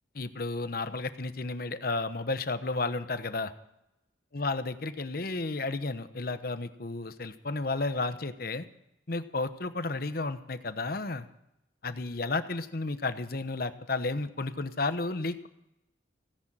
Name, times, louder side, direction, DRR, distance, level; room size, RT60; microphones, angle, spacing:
voice 1, 0.1-3.5 4.3-8.6 9.1-11.3 11.8-15.5, left 3 dB, 50° left, 11 dB, 1.0 m, -32 dB
16.5 x 10.5 x 7.4 m, 0.85 s
head